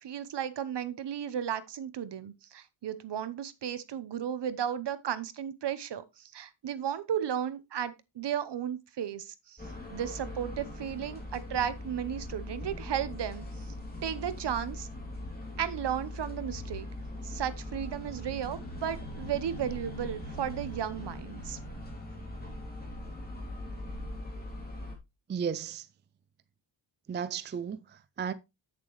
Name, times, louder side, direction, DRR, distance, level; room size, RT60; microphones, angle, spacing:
voice 1, 0.0-9.6 9.9-13.4 14.0-14.9 15.6-16.9 17.2-21.6, right 9 dB, 55° right, 0.9 m, -34 dB
sound 1, 9.6-25.0, left 1 dB, 20° left, 3.0 m, -41 dB
voice 2, 25.3-25.9 27.1-28.3, right 7 dB, 25° right, 0.4 m, -34 dB
8.3 x 7.2 x 3.1 m
wide cardioid pair, 125°, 49 cm